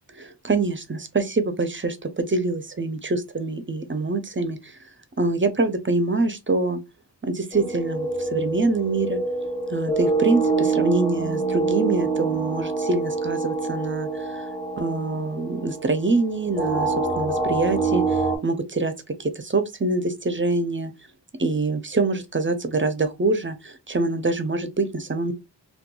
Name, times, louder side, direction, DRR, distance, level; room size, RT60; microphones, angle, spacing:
voice 1, 0.2-4.8 5.2-6.8 7.2-9.2 9.7-14.4 14.8-18.9 19.2-20.9 21.4-25.3, right 3 dB, 30° right, 0.4 m, -25 dB
sound 1, 7.5-18.4, right 3 dB, 20° left, 1.0 m, -26 dB
2.9 x 2.3 x 2.2 m
wide cardioid pair, 55°, 43 cm